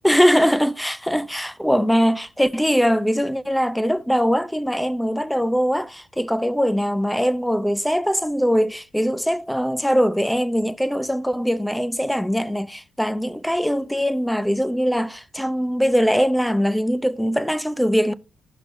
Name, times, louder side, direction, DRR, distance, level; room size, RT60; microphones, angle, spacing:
voice 1, 0.0-18.1, equal, ahead, 0.5 m, -21 dB
16.0 x 5.9 x 2.6 m
cardioid pair, 90°, 0 cm